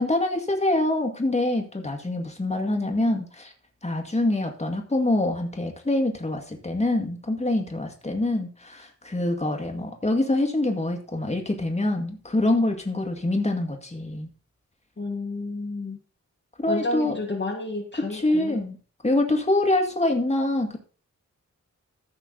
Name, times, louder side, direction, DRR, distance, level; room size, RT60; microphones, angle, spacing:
voice 1, 0.0-3.5 3.8-14.3 16.6-17.2 18.1-18.8 19.0-20.8, left 2 dB, 20° left, 3 dB, 1.9 m, -25 dB
voice 2, 15.0-16.0 16.7-18.6, left 2 dB, 35° left, 0 dB, 1.6 m, -31 dB
14.5 x 5.8 x 3.9 m, 0.38 s
wide cardioid pair, 100°, 30 cm